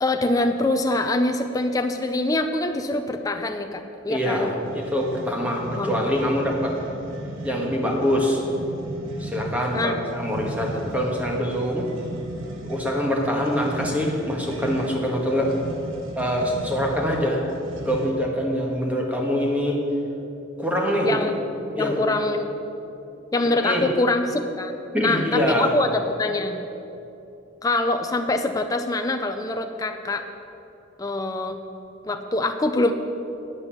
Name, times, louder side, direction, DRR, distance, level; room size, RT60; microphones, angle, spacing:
voice 1, 0.0-4.5 5.8-6.0 9.7-10.0 21.0-21.3 21.8-22.5 23.3-26.6 27.6-30.3 31.0-31.6 32.0-32.9, left 2 dB, 20° left, 5 dB, 0.4 m, -24 dB
voice 2, 4.1-6.7 7.4-8.4 9.2-11.9 12.6-15.5 16.1-17.4 17.8-19.8 20.6-21.2 21.8-22.2 23.6-23.8 24.9-25.7, equal, 5° right, -1 dB, 1.5 m, -24 dB
sound 1, 4.6-18.3, right 1 dB, 75° right, 1.1 m, -36 dB
9.7 x 8.2 x 7.0 m, 2.9 s
head